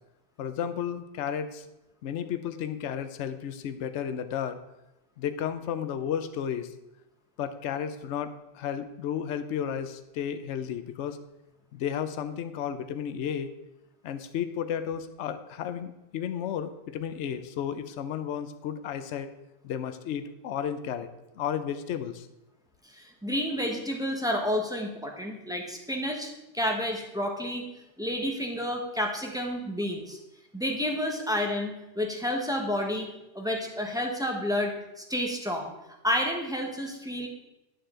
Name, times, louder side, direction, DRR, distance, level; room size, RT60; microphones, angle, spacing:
voice 1, 0.4-1.7 2.0-4.6 5.2-6.7 7.4-11.2 11.7-13.5 14.0-19.3 19.6-21.1 21.4-22.3, left 8 dB, 65° left, 10 dB, 0.9 m, -33 dB
voice 2, 22.8-27.7 28.0-30.2 30.5-33.1 33.3-35.7 36.0-37.3, left 1 dB, 5° right, 1 dB, 1.1 m, -30 dB
11.0 x 6.7 x 3.8 m, 0.93 s
omnidirectional pair, 1.3 m